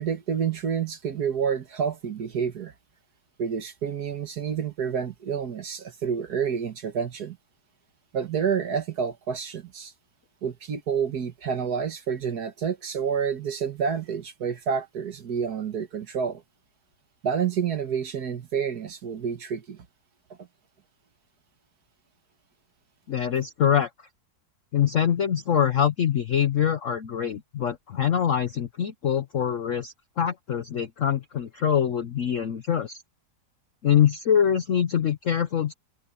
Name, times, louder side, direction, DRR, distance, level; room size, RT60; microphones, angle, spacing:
voice 1, 0.0-2.7 3.4-7.4 8.1-9.9 10.4-16.4 17.2-19.9, right 7 dB, 60° right, 1.9 m, -29 dB
voice 2, 23.1-23.9 24.7-33.0 33.8-35.7, left 9 dB, 55° left, 1.0 m, -24 dB
omnidirectional pair, 1.9 m